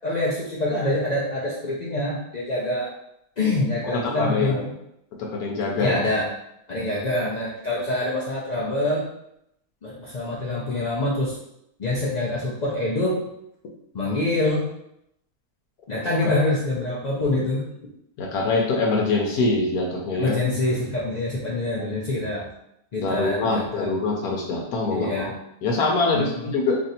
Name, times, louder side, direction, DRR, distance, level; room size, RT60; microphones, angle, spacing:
voice 1, 0.0-2.9 3.4-4.7 5.8-6.3 6.7-9.1 9.8-11.4 11.8-13.2 13.9-14.7 15.9-17.7 20.2-22.5 22.9-23.9 24.9-25.3 26.1-26.5, left 2 dB, 70° left, -5 dB, 0.4 m, -25 dB
voice 2, 3.8-4.6 5.2-5.9 16.2-16.4 18.2-20.4 23.0-25.3 25.6-26.8, left 3 dB, 85° left, -1 dB, 1.2 m, -24 dB
2.9 x 2.6 x 4.1 m, 0.78 s
omnidirectional pair, 1.5 m